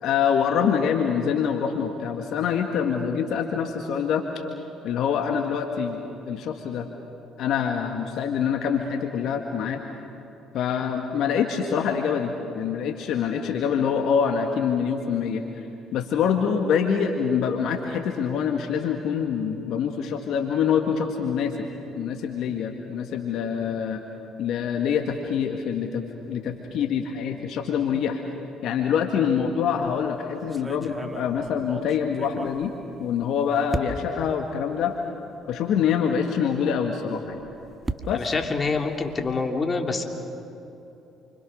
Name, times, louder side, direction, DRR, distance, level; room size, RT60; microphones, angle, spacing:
voice 1, 0.0-4.2 4.8-6.0 6.3-6.9 7.4-9.8 10.5-15.4 15.9-21.7 21.9-24.0 24.4-28.2 28.6-32.7 33.0-34.9 35.5-37.4 38.1-38.3, left 7 dB, 70° left, 3 dB, 1.9 m, -25 dB
sound 1, 29.7-30.0 30.5-33.3 33.7-34.3 35.0-35.1 35.4-35.5 37.2-39.5, right 3 dB, 20° right, 1.7 m, -36 dB
voice 2, 38.1-40.0, left 4 dB, 35° left, 3 dB, 3.3 m, -26 dB
29.0 x 26.0 x 6.6 m, 2.9 s
hypercardioid pair, 60°, 0 cm